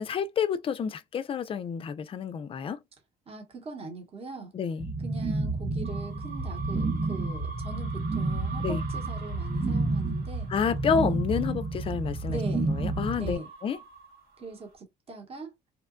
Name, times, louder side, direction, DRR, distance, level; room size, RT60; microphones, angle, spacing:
voice 1, 0.0-2.8 4.5-4.9 8.6-8.8 10.5-13.8, left 6 dB, 35° left, 0.3 m, -29 dB
voice 2, 3.3-4.5 5.0-10.5 12.3-12.8 13.2-13.5 14.4-15.6, right 3 dB, 35° right, 0.9 m, -41 dB
sound 1, 4.8-13.3, right 3 dB, 15° right, 0.6 m, -30 dB
sound 2, 5.8-14.7, right 4 dB, 70° right, 1.4 m, -45 dB
2.8 x 2.2 x 2.4 m
cardioid pair, 110°, 17 cm